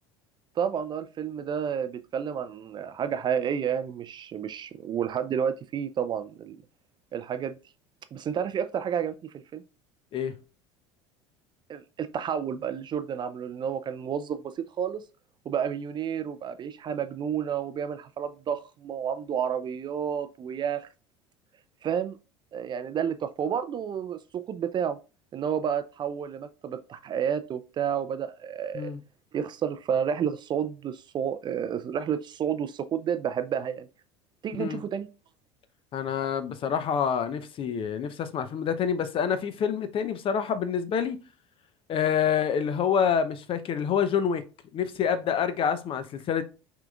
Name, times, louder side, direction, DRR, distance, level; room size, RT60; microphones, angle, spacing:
voice 1, 0.6-6.6 7.1-7.5 8.1-9.6 11.7-15.0 15.5-20.9 21.8-22.2 22.5-25.0 25.3-28.9 29.3-33.9 34.4-35.1, right 8 dB, 30° right, 0.4 m, -30 dB
voice 2, 35.9-41.2 41.9-44.4 44.7-46.4, left 7 dB, 35° left, 0.6 m, -27 dB
5.9 x 3.7 x 2.3 m
figure-of-eight pair, 70°, 15 cm